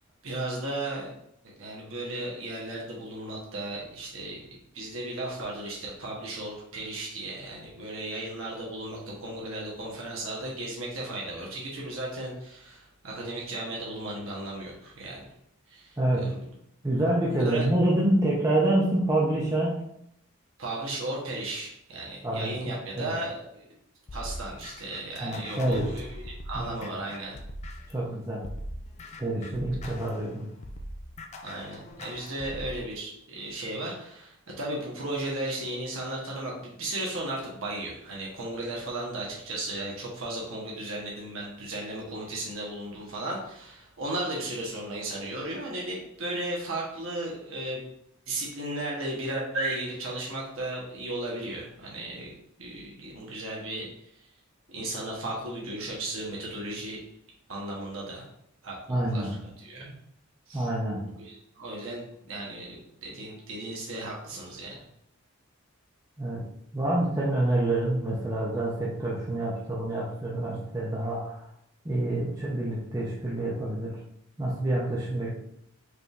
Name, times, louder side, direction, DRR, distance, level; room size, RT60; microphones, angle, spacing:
voice 1, 0.2-1.1 1.6-15.2 15.7-16.4 17.4-17.7 20.6-23.6 24.1-27.4 31.4-47.9 48.3-52.3 52.6-53.9 54.7-57.0 57.5-58.3 58.6-59.9 60.5-60.7 61.2-64.8, right 1 dB, 65° right, -3 dB, 1.0 m, -35 dB
voice 2, 16.0-16.3 16.8-19.8 22.2-23.1 25.2-25.9 26.5-26.9 27.9-28.5 29.2-30.5 58.9-59.3 60.5-61.0 66.2-66.4 66.7-71.4 71.8-73.9 74.4-75.3, right 1 dB, 15° right, -6 dB, 0.6 m, -27 dB
sound 1, 24.1-28.0 28.4-32.8, equal, 30° left, 0.3 m, -41 dB
4.9 x 3.3 x 2.4 m, 0.75 s
head